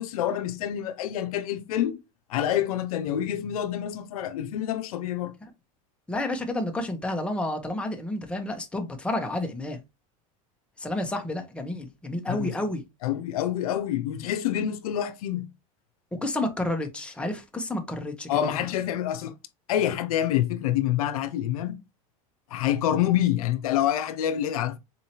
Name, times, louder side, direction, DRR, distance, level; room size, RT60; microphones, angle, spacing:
voice 1, 0.0-2.0 2.3-5.3 12.3-12.5 13.0-15.5 18.3-19.3 19.7-21.8 22.5-24.8, left 11 dB, 80° left, 0.6 m, -27 dB
voice 2, 6.1-9.8 10.8-12.8 16.1-18.7, left 1 dB, 5° left, 0.8 m, -30 dB
4.2 x 2.7 x 2.8 m
hypercardioid pair, 105°, 18 cm